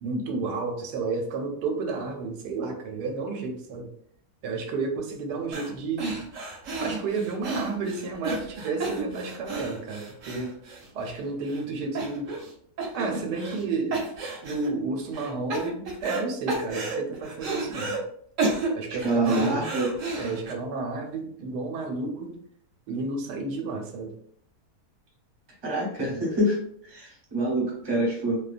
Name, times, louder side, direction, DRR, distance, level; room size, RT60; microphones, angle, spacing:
voice 1, 0.0-3.9 4.4-6.2 6.8-10.6 10.9-12.3 12.9-14.1 14.4-18.0 18.7-19.6 20.2-22.3 22.9-24.1, right 3 dB, 90° right, 3 dB, 1.2 m, -31 dB
sound 1, 5.5-5.7 6.0-11.2 11.5-11.6 11.9-12.5 12.8-13.6 13.9-14.7 15.1-16.2 16.5-18.0 18.4-20.5, right 3 dB, 65° right, 0.9 m, -32 dB
voice 2, 19.0-19.9 25.6-26.6 26.8-28.4, right 1 dB, 25° right, -4 dB, 0.6 m, -26 dB
2.7 x 2.1 x 2.4 m, 0.64 s
omnidirectional pair, 1.7 m